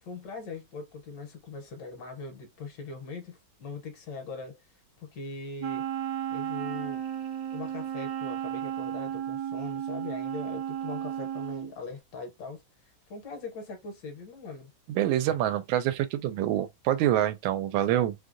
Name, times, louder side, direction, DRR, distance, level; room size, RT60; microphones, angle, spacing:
voice 1, 0.0-5.9 6.3-7.0 7.5-14.7, left 4 dB, 70° left, 1.4 m, -41 dB
Wind instrument woodwind instrument, 5.6-11.7, right 10 dB, 70° right, 0.9 m, -34 dB
voice 2, 14.9-18.1, right 12 dB, 85° right, 1.4 m, -26 dB
3.3 x 2.7 x 2.5 m
omnidirectional pair, 2.1 m